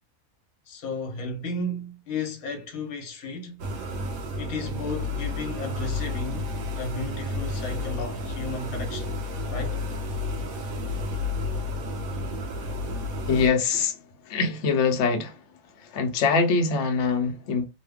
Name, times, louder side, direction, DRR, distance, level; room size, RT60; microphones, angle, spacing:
voice 1, 0.7-3.6 4.4-9.1 9.5-9.8, left 2 dB, 85° left, 1.2 m, -34 dB
sound 1, 3.6-13.5, left 2 dB, 80° right, 1.1 m, -31 dB
voice 2, 13.3-14.0 14.3-15.4 15.8-17.7, left 5 dB, 60° left, 0.9 m, -23 dB
3.0 x 2.2 x 3.4 m
omnidirectional pair, 1.5 m